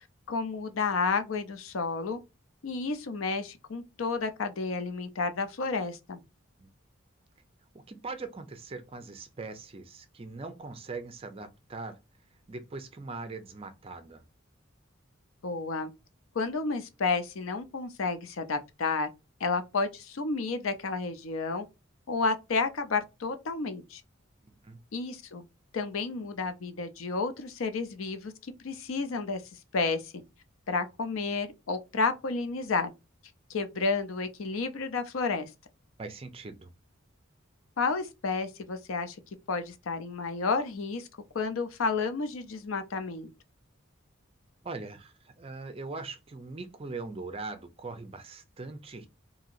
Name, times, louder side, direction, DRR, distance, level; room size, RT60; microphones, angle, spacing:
voice 1, 0.3-2.2 2.6-6.2 15.4-15.9 16.3-19.1 19.4-21.7 22.1-24.0 24.9-25.4 25.7-29.4 29.7-30.1 30.7-32.9 33.5-35.5 37.8-39.2 39.5-41.1 41.3-43.3, left 4 dB, 85° left, 0.5 m, -31 dB
voice 2, 7.7-12.0 12.5-14.2 24.6-24.8 36.0-36.7 44.6-49.1, right 3 dB, 30° right, 0.5 m, -41 dB
2.8 x 2.7 x 2.4 m
head